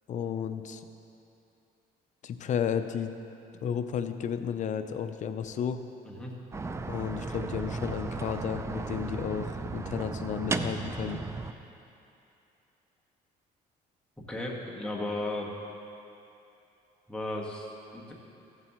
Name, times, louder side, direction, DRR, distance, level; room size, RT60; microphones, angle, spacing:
voice 1, 0.1-0.8 2.2-3.1 3.5-5.8 6.8-11.2, left 8 dB, 45° left, 9 dB, 0.5 m, -33 dB
sound 1, 6.5-11.5, right 3 dB, 15° right, 0.4 m, -35 dB
voice 2, 14.3-15.5 17.1-18.1, left 1 dB, 5° left, -3 dB, 1.4 m, -35 dB
14.0 x 7.6 x 3.0 m, 2.8 s
cardioid pair, 110°, 17 cm